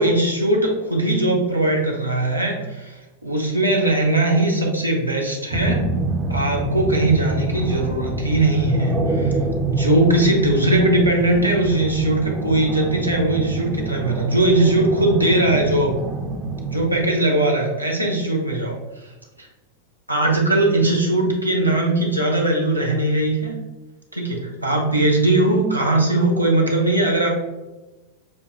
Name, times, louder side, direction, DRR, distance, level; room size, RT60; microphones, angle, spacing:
voice 1, 0.0-2.9 3.2-5.8 6.3-9.4 9.6-15.9 16.7-18.8 19.4-19.5 20.1-23.6 24.1-27.3, right 2 dB, 85° right, -1 dB, 0.8 m, -20 dB
sound 1, 5.5-17.1, right 2 dB, 20° right, 0.6 m, -26 dB
6.2 x 2.8 x 2.2 m, 1.1 s
figure-of-eight pair, 90°, 0 cm